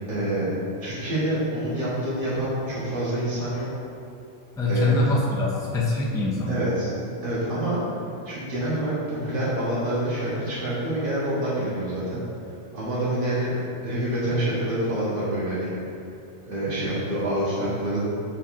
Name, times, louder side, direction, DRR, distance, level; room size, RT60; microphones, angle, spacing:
voice 1, 0.1-0.5 0.8-3.7 4.7-4.9 6.5-6.9 7.2-7.8 8.3-12.2 12.7-15.8 16.5-18.0, right 1 dB, 45° right, -10 dB, 1.9 m, -27 dB
voice 2, 4.6-6.5 16.8-16.9, left 2 dB, 5° left, -4 dB, 0.6 m, -24 dB
7.3 x 4.3 x 3.7 m, 2.6 s
omnidirectional pair, 1.3 m